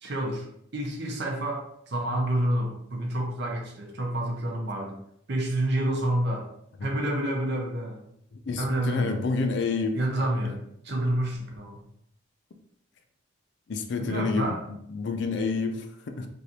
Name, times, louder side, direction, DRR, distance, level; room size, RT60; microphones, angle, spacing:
voice 1, 0.0-0.5 0.7-5.0 5.3-6.5 6.8-8.1 8.6-9.3 9.9-10.6 10.8-11.8 14.0-14.6, right 1 dB, 55° right, 1 dB, 0.7 m, -28 dB
voice 2, 8.5-9.9 13.7-14.5 14.9-16.3, left 4 dB, 55° left, 6 dB, 0.4 m, -28 dB
3.2 x 2.5 x 2.8 m, 0.72 s
head